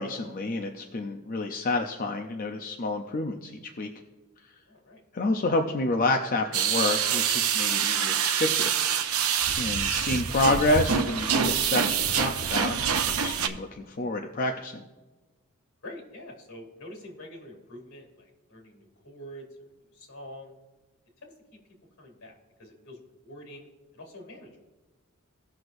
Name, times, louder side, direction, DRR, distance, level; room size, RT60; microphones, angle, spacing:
voice 1, 0.0-3.9 5.1-8.8 9.5-12.8 13.1-14.8, left 2 dB, 40° left, 3 dB, 0.6 m, -28 dB
voice 2, 4.7-5.0 9.4-9.6 15.8-20.5 21.2-21.6 22.0-23.7 23.9-24.6, left 1 dB, 75° left, 2 dB, 2.7 m, -46 dB
sound 1, 6.5-13.5, right 7 dB, 85° right, 0.7 m, -26 dB
17.5 x 6.2 x 2.6 m, 1.2 s
head